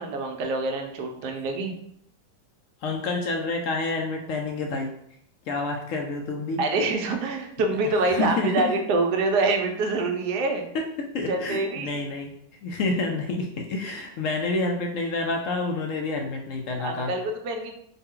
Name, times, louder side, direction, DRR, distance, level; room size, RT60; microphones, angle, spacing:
voice 1, 0.0-1.7 6.6-10.7 11.3-11.9 16.8-17.7, right 3 dB, 80° right, 3 dB, 1.2 m, -26 dB
voice 2, 2.8-4.9 5.5-6.6 7.8-8.7 11.1-12.3 12.6-17.1, left 3 dB, 75° left, 2 dB, 0.7 m, -28 dB
4.0 x 2.2 x 3.6 m, 0.71 s
omnidirectional pair, 1.8 m